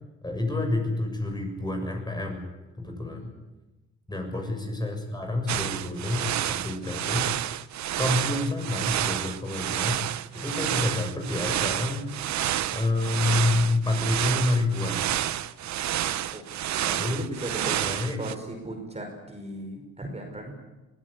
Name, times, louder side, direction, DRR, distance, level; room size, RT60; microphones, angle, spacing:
voice 1, 0.2-2.5 2.8-3.3 4.1-7.3 8.0-10.0 10.3-12.1 12.7-15.0 16.8-17.3 17.8-18.2, left 2 dB, 15° left, 3 dB, 6.9 m, -28 dB
sound 1, 5.5-18.3, right 12 dB, 65° right, 0.9 m, -29 dB
voice 2, 17.0-17.8 18.2-20.5, right 1 dB, 20° right, 3 dB, 5.5 m, -37 dB
23.5 x 16.5 x 9.8 m, 1.1 s
cardioid pair, 90°, 30 cm